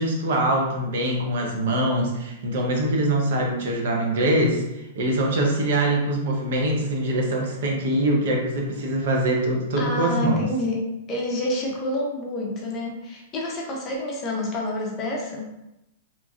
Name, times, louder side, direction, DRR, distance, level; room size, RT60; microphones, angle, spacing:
voice 1, 0.0-4.6 5.0-10.4, right 1 dB, 65° right, 0 dB, 0.7 m, -23 dB
voice 2, 9.8-10.8 11.1-15.4, left 1 dB, 25° left, -2 dB, 0.6 m, -28 dB
3.0 x 2.5 x 2.4 m, 0.88 s
hypercardioid pair, 150°, 0 cm